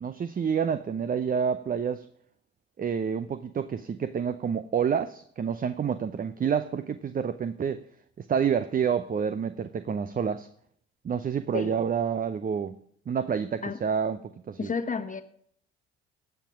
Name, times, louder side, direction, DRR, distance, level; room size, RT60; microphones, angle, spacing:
voice 1, 0.0-2.0 2.8-7.8 8.2-10.5 11.0-12.8 13.1-14.7, right 7 dB, 25° right, 0.6 m, -28 dB
voice 2, 14.6-15.2, left 5 dB, 25° left, 1.3 m, -31 dB
17.5 x 5.9 x 6.1 m
hypercardioid pair, 60°, 32 cm